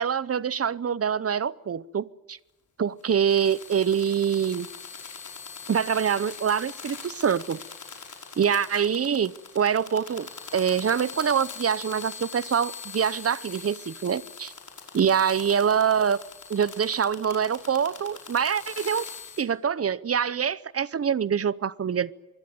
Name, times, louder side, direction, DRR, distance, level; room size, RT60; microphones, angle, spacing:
voice 1, 0.0-2.4 2.8-4.7 5.7-7.6 8.4-14.5 14.9-16.2 16.5-19.1 19.4-22.1, right 7 dB, 45° right, 0.8 m, -25 dB
sound 1, 3.0-19.4, left 5 dB, 65° left, 5.7 m, -42 dB
25.0 x 21.5 x 7.8 m
wide cardioid pair, 160°, 33 cm